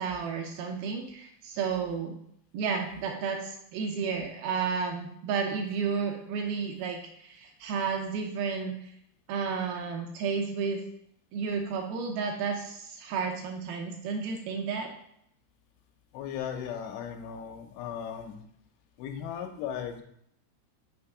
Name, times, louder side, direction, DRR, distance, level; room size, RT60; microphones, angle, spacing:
voice 1, 0.0-2.1 2.5-8.7 9.3-10.8 11.3-14.9, right 5 dB, 80° right, 3 dB, 2.3 m, -32 dB
voice 2, 16.1-18.4 19.0-20.0, left 8 dB, 90° left, 6 dB, 2.9 m, -37 dB
6.2 x 3.6 x 4.8 m, 0.70 s
omnidirectional pair, 4.8 m